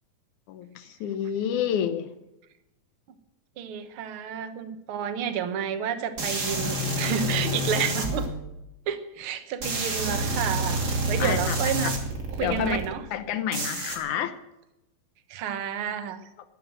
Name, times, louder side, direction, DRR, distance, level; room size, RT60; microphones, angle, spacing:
voice 1, 0.5-2.1 11.2-11.7 12.4-12.8 13.1-14.3, left 9 dB, 75° left, 10 dB, 2.0 m, -29 dB
voice 2, 3.6-8.3 8.9-12.0 12.3-13.1 15.3-16.3, right 8 dB, 65° right, 10 dB, 1.4 m, -30 dB
sound 1, 6.2-8.3 9.6-12.9 13.5-14.0, right 1 dB, 30° right, 2.7 m, -28 dB
13.5 x 11.5 x 7.7 m, 0.92 s
omnidirectional pair, 4.1 m